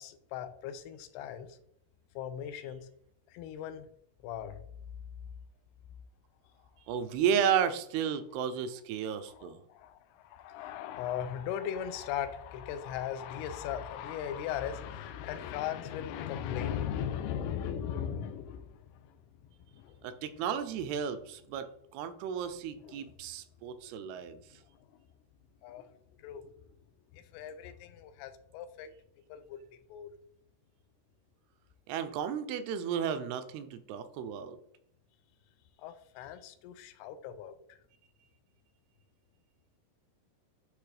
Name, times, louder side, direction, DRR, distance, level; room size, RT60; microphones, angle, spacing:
voice 1, 0.0-1.6 2.2-2.9 3.3-3.9 4.2-4.6 9.2-19.2 19.7-20.0 22.8-23.2 24.9-25.0 25.6-25.9 26.2-26.5 27.1-28.9 29.3-29.6 29.9-30.1 35.8-37.6, left 9 dB, 80° left, 10 dB, 2.6 m, -38 dB
voice 2, 6.9-9.6 20.0-21.7 21.9-24.4 31.9-34.6, right 8 dB, 80° right, 10 dB, 2.5 m, -33 dB
10.0 x 3.4 x 3.3 m, 0.74 s
omnidirectional pair, 4.7 m